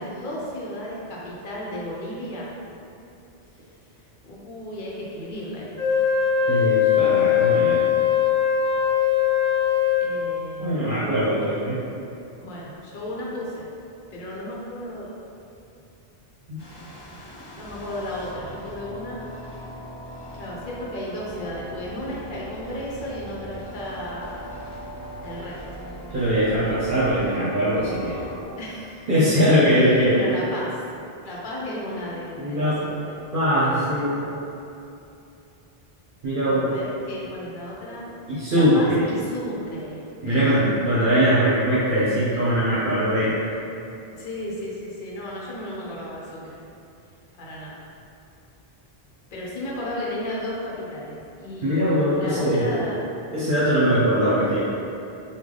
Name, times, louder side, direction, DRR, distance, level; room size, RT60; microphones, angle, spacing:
voice 1, 0.0-2.5 4.2-6.1 6.5-7.0 10.0-11.2 12.4-13.6 14.1-15.2 17.0-17.3 17.5-19.2 20.3-24.5 25.2-25.8 28.6-29.0 29.8-30.8 31.2-33.2 36.4-38.1 38.5-40.6 44.1-46.6 47.4-47.9 49.3-53.1, left 1 dB, 55° left, -5 dB, 0.8 m, -34 dB
Wind instrument woodwind instrument, 5.8-10.1, left 9 dB, 20° right, 1.5 m, -20 dB
voice 2, 6.5-7.8 10.6-11.8 16.5-16.6 26.1-28.2 29.1-30.2 32.4-32.8 33.3-34.2 36.2-36.7 38.3-39.1 40.2-43.6 51.6-52.8 53.3-54.6, equal, 60° right, -10 dB, 0.9 m, -21 dB
sound 1, 16.6-28.4, equal, 30° left, 0.6 m, -39 dB
3.2 x 2.3 x 3.7 m, 2.7 s
omnidirectional pair, 1.0 m